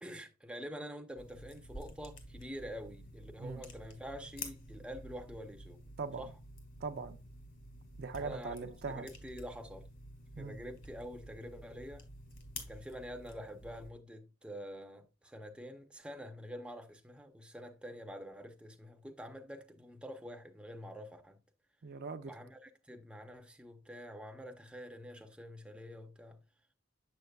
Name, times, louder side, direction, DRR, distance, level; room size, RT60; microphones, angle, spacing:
voice 1, 0.0-5.8 6.2-6.3 8.1-8.6 8.9-9.9 10.4-12.1 12.7-21.4 22.3-26.4, equal, 5° right, 0.5 m, -47 dB
sound 1, 1.2-13.9, left 1 dB, 60° left, 1.7 m, -50 dB
voice 2, 6.8-7.2 8.0-9.1 10.4-10.6 21.8-22.3, right 4 dB, 50° right, 0.5 m, -40 dB
7.1 x 6.5 x 2.3 m
head